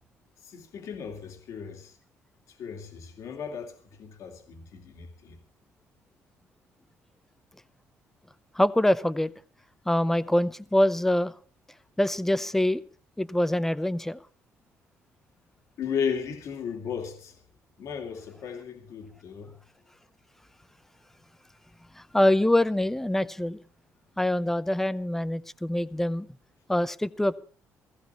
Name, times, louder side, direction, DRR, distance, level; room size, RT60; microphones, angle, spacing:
voice 1, 0.4-2.0 2.5-5.4 15.8-17.4 17.8-19.6, left 7 dB, 70° left, 2.7 m, -35 dB
voice 2, 8.5-9.3 9.9-11.3 12.0-12.8 13.2-14.2 22.0-23.6 24.2-26.3 26.7-27.4, left 1 dB, 5° left, 0.7 m, -24 dB
17.0 x 15.5 x 4.4 m
cardioid pair, 110°, 6 cm